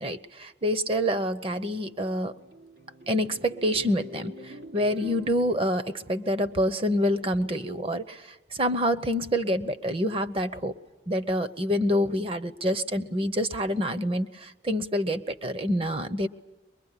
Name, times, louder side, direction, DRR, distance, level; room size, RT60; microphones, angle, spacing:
voice 1, 0.0-2.3 3.1-10.7 11.1-16.3, equal, 30° right, 11 dB, 0.8 m, -27 dB
sound 1, 1.8-7.2, equal, 70° right, 3.8 m, -46 dB
23.0 x 21.5 x 9.8 m, 1.1 s
head